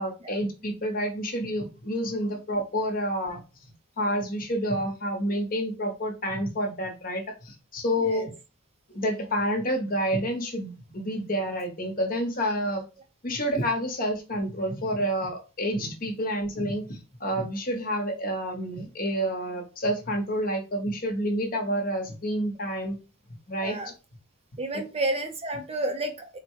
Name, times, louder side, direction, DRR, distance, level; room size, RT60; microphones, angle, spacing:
voice 1, 0.0-3.4 4.0-8.3 8.9-12.8 13.2-22.9 23.5-23.8, equal, 40° left, 3 dB, 1.0 m, -29 dB
voice 2, 23.6-23.9 24.6-26.4, right 1 dB, 30° right, 5 dB, 0.5 m, -31 dB
4.2 x 2.1 x 4.6 m, 0.31 s
head